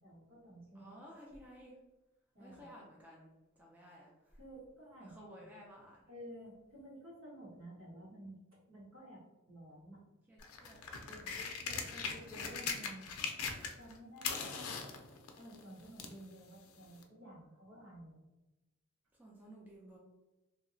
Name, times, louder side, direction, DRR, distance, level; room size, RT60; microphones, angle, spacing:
voice 1, 0.0-0.9 2.3-2.7 4.4-5.5 6.1-8.4 8.7-10.0 11.1-13.1 13.8-14.8 15.4-18.1, right 1 dB, 75° right, -7 dB, 1.4 m, -52 dB
voice 2, 0.8-1.8 2.4-3.3 3.6-4.4 5.0-6.0 10.3-11.5 19.1-20.0, equal, 10° right, -3 dB, 0.3 m, -55 dB
sound 1, 10.4-13.9 14.2-16.2 17.0-17.1, left 5 dB, 85° left, 0.4 m, -40 dB
2.8 x 2.0 x 2.5 m, 1.1 s
head